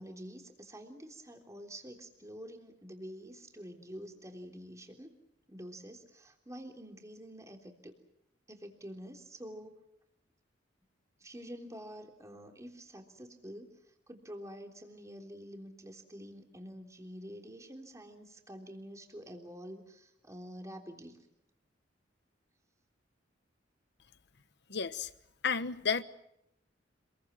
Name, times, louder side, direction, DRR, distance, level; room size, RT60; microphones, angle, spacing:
voice 1, 0.0-5.2 5.5-7.9 8.5-9.8 11.2-13.8 14.1-21.2, equal, 15° right, 3.4 m, -47 dB
voice 2, 24.7-25.1 25.4-26.0, left 6 dB, 65° left, 1.2 m, -31 dB
27.5 x 22.0 x 7.5 m
head